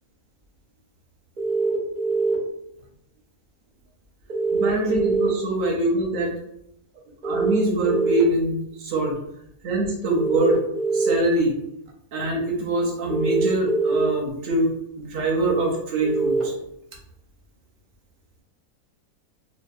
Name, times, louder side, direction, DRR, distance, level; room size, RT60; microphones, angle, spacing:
sound 1, 1.4-2.3 4.3-5.3 7.2-8.2 10.2-11.1 13.1-14.1 16.0-16.4, right 3 dB, 50° right, 0.5 m, -23 dB
voice 1, 4.5-6.3 7.2-9.2 9.6-10.6 10.9-11.6 12.1-14.7 15.0-16.5, right 2 dB, 70° right, -1 dB, 0.9 m, -24 dB
2.7 x 2.1 x 2.2 m, 0.77 s
omnidirectional pair, 1.6 m